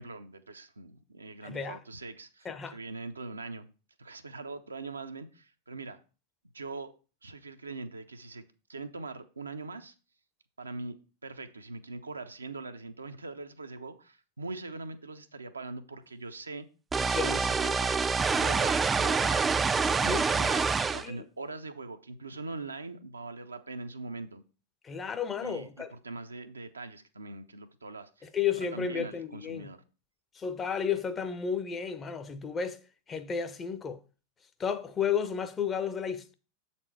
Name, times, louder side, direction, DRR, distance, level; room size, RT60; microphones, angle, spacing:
voice 1, 0.0-3.7 4.0-6.0 6.5-6.9 7.2-8.4 8.7-9.9 10.6-10.9 11.2-16.7 17.0-19.5 19.8-20.6 20.9-24.4 25.4-28.3 28.6-29.8, right 3 dB, 80° right, 0.6 m, -42 dB
voice 2, 1.4-1.8 2.4-2.8 17.1-17.5 20.0-20.7 21.0-21.2 24.8-25.9 28.2-29.7 30.3-32.8 33.1-34.0 34.6-36.3, left 7 dB, 20° left, 0.7 m, -33 dB
sound 1, 16.9-21.1, right 5 dB, 15° right, 0.3 m, -26 dB
7.4 x 4.2 x 4.6 m
figure-of-eight pair, 90°, 0 cm